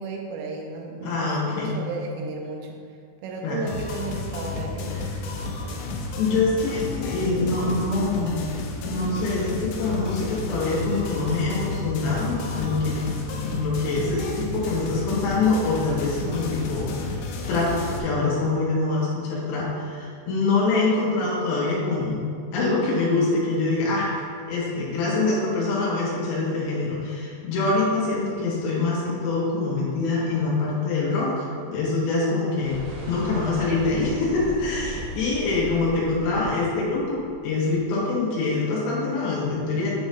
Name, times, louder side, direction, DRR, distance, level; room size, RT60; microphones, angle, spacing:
voice 1, 0.0-2.8 3.2-5.8, right 3 dB, 80° right, 1 dB, 3.1 m, -34 dB
voice 2, 1.0-1.8 3.4-3.6 6.2-8.4 8.8-22.2 22.5-24.1 24.5-32.8 33.1-39.9, left 3 dB, 70° left, -5 dB, 3.3 m, -25 dB
sound 1, 3.7-18.0, left 2 dB, 85° left, 2.6 m, -32 dB
sound 2, 32.6-37.8, equal, 65° right, 2.1 m, -37 dB
9.1 x 3.0 x 5.4 m, 2.2 s
omnidirectional pair, 5.8 m